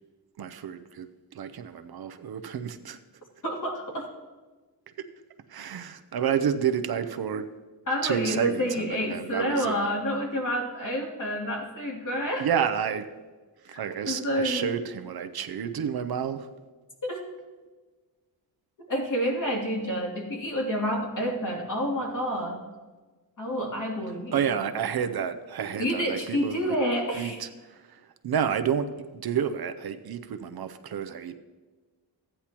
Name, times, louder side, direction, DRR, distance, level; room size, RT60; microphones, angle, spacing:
voice 1, 0.4-3.0 5.5-7.5 8.0-9.9 12.4-13.1 13.6-16.5 24.3-26.8 27.2-31.4, right 8 dB, 60° right, 8 dB, 0.6 m, -30 dB
voice 2, 3.4-4.1 7.9-12.6 13.7-13.8 14.0-14.7 17.0-17.2 18.8-22.6 23.4-24.5 25.8-27.4, equal, 45° left, -2 dB, 2.7 m, -29 dB
14.5 x 9.9 x 3.0 m, 1.3 s
wide cardioid pair, 110°, 43 cm